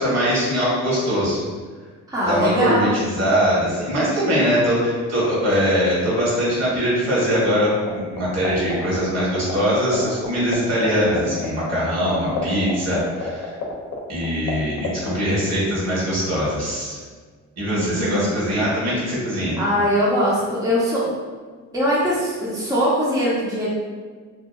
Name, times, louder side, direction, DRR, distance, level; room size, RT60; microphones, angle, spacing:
voice 1, 0.0-1.4 2.2-13.5 14.1-17.0 17.6-19.6, equal, 60° right, -7 dB, 1.3 m, -22 dB
voice 2, 2.1-3.0 17.7-18.3 19.6-21.1 21.7-23.7, equal, 10° right, -8 dB, 0.7 m, -21 dB
sound 1, 7.3-7.9 8.2-10.3 10.5-10.6 10.8-14.5 14.8-15.1, left 8 dB, 65° left, 0.6 m, -26 dB
2.7 x 2.2 x 2.3 m, 1.5 s
cardioid pair, 90°, 30 cm